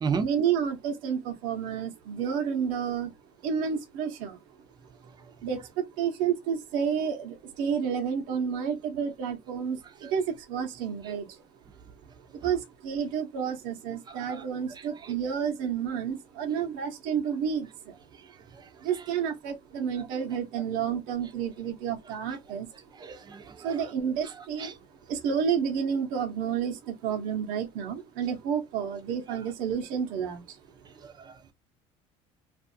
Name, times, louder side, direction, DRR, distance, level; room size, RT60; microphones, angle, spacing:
voice 1, 0.2-3.1 3.4-4.4 5.4-11.4 12.3-17.9 18.8-22.7 23.6-24.8 25.1-30.6, right 7 dB, 75° right, 0.9 m, -30 dB
voice 2, 23.0-23.7 24.6-24.7 31.0-31.3, right 5 dB, 30° right, 0.7 m, -33 dB
2.6 x 2.5 x 2.6 m
cardioid pair, 115°, 15 cm